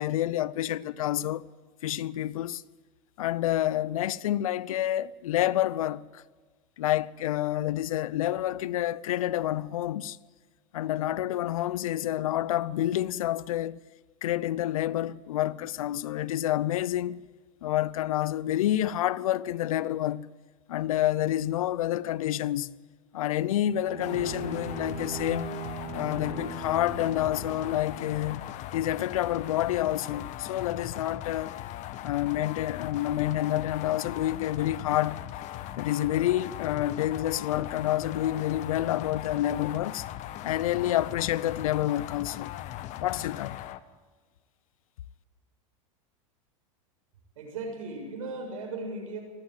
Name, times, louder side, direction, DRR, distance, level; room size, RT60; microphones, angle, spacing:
voice 1, 0.0-1.4 1.8-2.6 3.2-6.2 6.8-10.2 10.7-13.8 14.2-17.2 17.6-20.3 20.7-22.7 23.1-25.6 25.9-28.4 28.7-31.6 32.0-35.2 35.8-40.0 40.4-42.5 43.0-43.6, left 13 dB, 80° left, 0.7 m, -28 dB
Bowed string instrument, 23.7-28.5, right 5 dB, 30° right, 3.9 m, -40 dB
sound 1, 24.0-43.8, left 13 dB, 45° left, 1.2 m, -39 dB
voice 2, 47.4-49.2, right 3 dB, 80° right, 6.9 m, -36 dB
19.5 x 15.0 x 9.1 m
hypercardioid pair, 115°, 18 cm